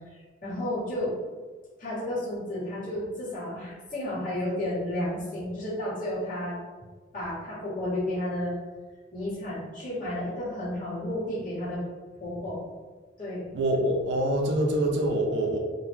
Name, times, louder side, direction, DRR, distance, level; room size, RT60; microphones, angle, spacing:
voice 1, 0.1-1.1 1.8-6.6 7.1-8.5 9.1-11.8 12.2-12.6 13.2-13.4, left 1 dB, 45° left, -10 dB, 1.2 m, -32 dB
voice 2, 13.5-15.6, right 1 dB, 65° right, 1 dB, 0.4 m, -25 dB
2.6 x 2.1 x 3.1 m, 1.4 s
head